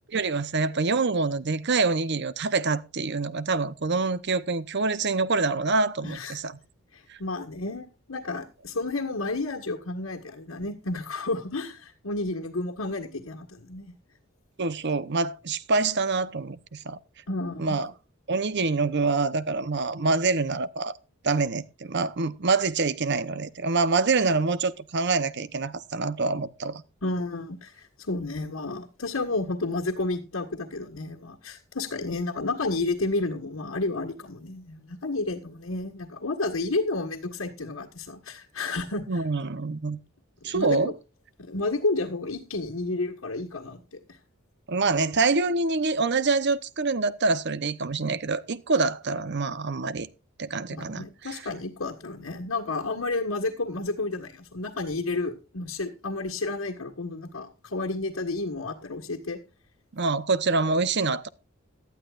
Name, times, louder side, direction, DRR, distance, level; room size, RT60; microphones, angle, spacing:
voice 1, 0.1-6.6 7.1-7.2 14.6-17.0 17.6-17.9 18.3-20.9 21.2-26.8 39.1-40.0 40.4-40.9 44.7-50.1 50.4-51.4 59.9-61.3, right 3 dB, 55° right, 0.9 m, -26 dB
voice 2, 6.0-6.4 6.9-13.9 17.3-17.8 27.0-39.2 40.4-40.9 41.4-44.2 50.7-59.4, left 2 dB, 85° left, 1.8 m, -31 dB
17.5 x 12.5 x 2.5 m
head